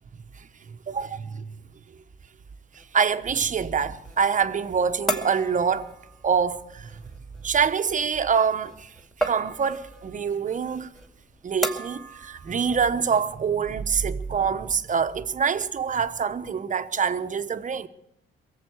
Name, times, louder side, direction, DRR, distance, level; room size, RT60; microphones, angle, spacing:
voice 1, 0.9-1.4 2.7-5.9 6.2-7.0 7.4-8.9 9.2-10.9 11.4-17.9, right 6 dB, 40° right, 1.0 m, -25 dB
sound 1, 2.7-13.6, right 1 dB, ahead, 2.2 m, -36 dB
22.5 x 7.7 x 7.8 m
cardioid pair, 90°, 20 cm